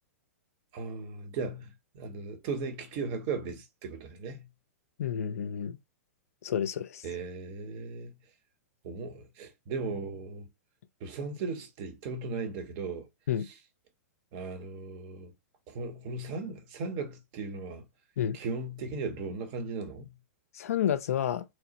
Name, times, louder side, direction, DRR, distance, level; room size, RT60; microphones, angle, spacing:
voice 1, 0.7-4.5 7.0-8.1 8.8-10.5 11.0-13.1 13.4-13.5 14.3-15.3 15.7-17.8 18.3-20.2, right 4 dB, 45° right, 0.8 m, -37 dB
voice 2, 5.0-5.8 6.4-7.0 13.3-13.5 18.2-18.4 20.5-21.4, left 9 dB, 70° left, 0.4 m, -30 dB
3.0 x 2.0 x 2.8 m
hypercardioid pair, 110°, 8 cm